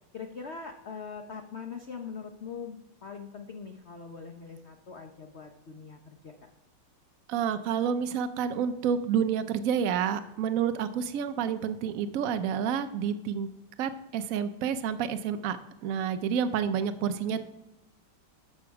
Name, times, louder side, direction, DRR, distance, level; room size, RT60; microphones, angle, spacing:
voice 1, 0.1-6.5 17.1-17.4, left 5 dB, 60° left, 4 dB, 0.7 m, -42 dB
voice 2, 7.3-13.5 13.8-17.4, right 7 dB, 85° right, 10 dB, 0.7 m, -29 dB
13.0 x 6.9 x 4.7 m, 0.96 s
omnidirectional pair, 2.3 m